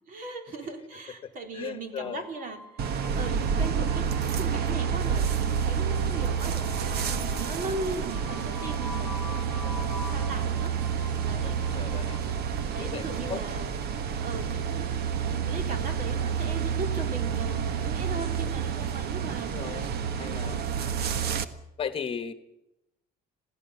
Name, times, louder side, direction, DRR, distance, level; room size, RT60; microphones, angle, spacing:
voice 1, 0.1-2.8 3.1-4.1 4.3-6.7 7.1-10.7 11.2-11.5 12.7-13.7 14.1-20.5, right 3 dB, 55° right, 5 dB, 3.8 m, -38 dB
voice 2, 1.2-2.2 11.4-12.2 12.8-13.4 19.4-19.9 20.2-20.6 21.1-21.3 21.8-22.3, left 7 dB, 35° left, 10 dB, 1.3 m, -37 dB
sound 1, 1.9-16.9, left 2 dB, 10° right, 7.7 m, -46 dB
sound 2, 2.8-21.5, right 7 dB, 70° right, 1.5 m, -29 dB
27.0 x 16.5 x 7.1 m, 0.87 s
cardioid pair, 170°, 17 cm